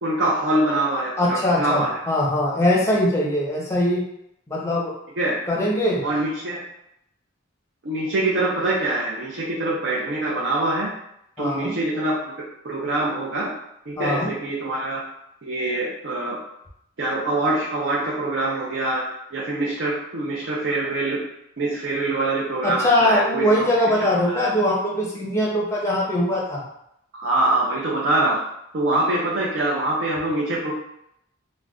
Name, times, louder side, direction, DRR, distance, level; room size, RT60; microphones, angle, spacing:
voice 1, 0.0-2.0 5.2-5.3 6.0-6.6 7.8-10.9 11.4-12.2 12.6-13.5 13.9-15.0 15.4-16.4 17.0-19.0 19.3-21.2 21.6-23.7 24.0-24.5 27.1-28.4 28.7-30.7, right 2 dB, 60° right, -6 dB, 0.5 m, -24 dB
voice 2, 1.2-4.0 4.5-4.9 5.5-6.0 11.4-11.7 14.0-14.3 22.6-26.6, left 1 dB, 15° left, -4 dB, 0.6 m, -21 dB
2.5 x 2.2 x 3.5 m, 0.78 s
head